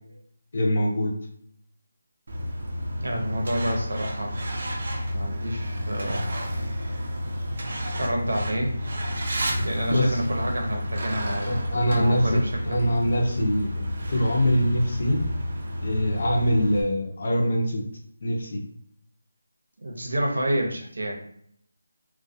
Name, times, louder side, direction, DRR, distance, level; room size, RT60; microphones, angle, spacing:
voice 1, 0.5-1.1 9.9-10.2 11.4-12.4 12.7-15.2 15.8-17.8 18.2-18.6, equal, 45° left, 0 dB, 0.5 m, -23 dB
Truck, 2.3-16.8, equal, 40° right, 0.4 m, -30 dB
voice 2, 3.0-7.0 8.0-8.8 9.6-11.6 11.9-12.9 19.8-21.1, right 1 dB, 85° right, 1 dB, 0.7 m, -29 dB
2.2 x 2.2 x 2.6 m, 0.66 s
figure-of-eight pair, 175°, 0 cm